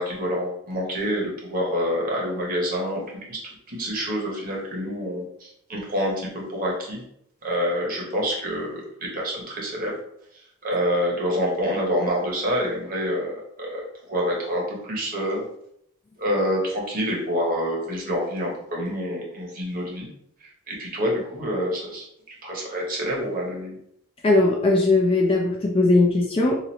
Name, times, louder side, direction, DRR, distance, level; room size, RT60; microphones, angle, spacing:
voice 1, 0.0-3.0 3.3-3.4 3.7-7.0 7.4-9.9 10.3-15.4 16.2-20.1 20.4-23.8, equal, 40° right, -2 dB, 1.1 m, -27 dB
voice 2, 24.2-26.7, left 2 dB, 25° left, 0 dB, 0.4 m, -19 dB
3.0 x 2.5 x 4.0 m, 0.73 s
head